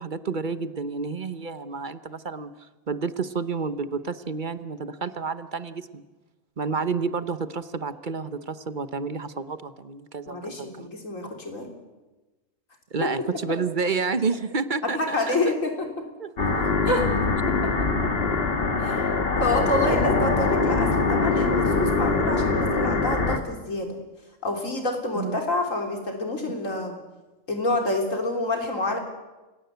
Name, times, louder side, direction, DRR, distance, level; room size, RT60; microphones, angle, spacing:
voice 1, 0.0-2.5 2.9-6.0 6.6-10.9 12.9-15.5 16.2-16.3 19.6-20.4 25.1-25.4, right 4 dB, 40° right, 13 dB, 1.0 m, -30 dB
voice 2, 10.3-11.7 13.0-13.1 15.0-15.9 16.8-17.1 17.5-17.7 18.8-23.9 24.4-27.0 27.5-29.0, left 2 dB, 85° left, 3 dB, 3.9 m, -27 dB
sound 1, 16.4-23.4, left 3 dB, 50° left, 1.8 m, -23 dB
29.0 x 17.0 x 8.1 m, 1.2 s
omnidirectional pair, 1.3 m